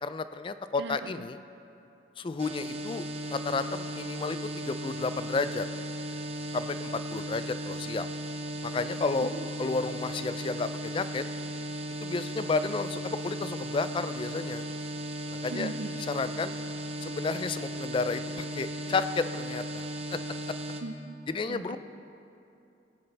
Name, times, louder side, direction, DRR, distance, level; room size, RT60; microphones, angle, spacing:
voice 1, 0.0-1.4 2.2-5.7 6.5-8.1 8.6-9.3 9.6-11.2 12.0-14.6 15.3-15.7 16.1-16.5 17.0-20.2 20.5-20.6 21.3-21.8, left 4 dB, 30° left, 12 dB, 0.3 m, -32 dB
voice 2, 0.8-1.1 9.2-9.4 15.5-15.9 20.8-21.8, right 2 dB, 80° right, 11 dB, 0.5 m, -39 dB
sound 1, 2.4-20.8, equal, 35° right, 0.7 m, -36 dB
18.5 x 9.8 x 3.3 m, 2.7 s
head